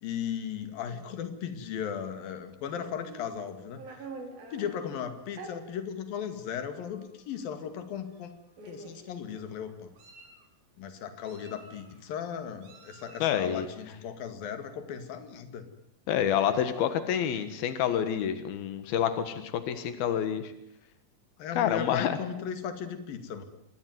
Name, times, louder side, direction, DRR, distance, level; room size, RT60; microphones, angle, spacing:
voice 1, 0.0-4.1 4.5-8.3 8.7-9.9 10.8-15.7 21.4-23.4, left 8 dB, 75° left, 8 dB, 3.9 m, -36 dB
Meow, 3.0-4.7 5.3-5.5 6.4-6.5 6.9-7.1 8.1-8.2 8.6-9.1 9.7-10.4 11.2-12.0 12.6-13.3, right 3 dB, 75° right, 5.9 m, -46 dB
voice 2, 13.2-13.7 16.1-20.5 21.5-22.2, left 9 dB, 90° left, 10 dB, 3.4 m, -28 dB
26.0 x 21.5 x 9.5 m, 0.82 s
omnidirectional pair, 4.2 m